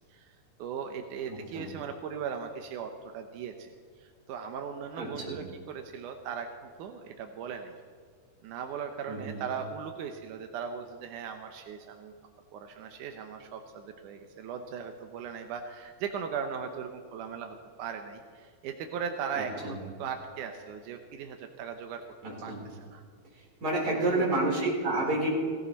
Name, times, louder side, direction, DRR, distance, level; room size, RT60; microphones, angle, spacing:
voice 1, 0.1-3.7 4.0-6.5 6.8-7.7 8.4-12.1 12.5-22.0 22.4-23.0 23.8-24.2, right 7 dB, 80° right, 5 dB, 1.8 m, -38 dB
voice 2, 1.3-1.6 4.9-5.3 9.1-9.4 19.3-19.7 22.2-22.6 23.6-25.3, right 2 dB, 25° right, -4 dB, 4.4 m, -30 dB
17.0 x 16.5 x 4.2 m, 2.1 s
omnidirectional pair, 4.6 m